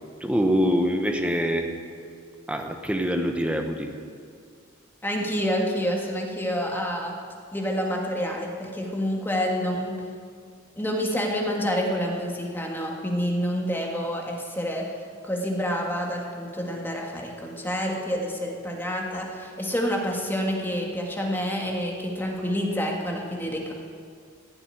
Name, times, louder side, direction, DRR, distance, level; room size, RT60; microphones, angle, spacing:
voice 1, 0.2-1.7 2.5-3.9, equal, 5° right, 4 dB, 1.1 m, -24 dB
voice 2, 5.0-7.1 7.5-10.0 10.8-14.9 15.2-23.7, equal, 10° left, -1 dB, 1.7 m, -28 dB
16.0 x 7.0 x 9.9 m, 2.1 s
head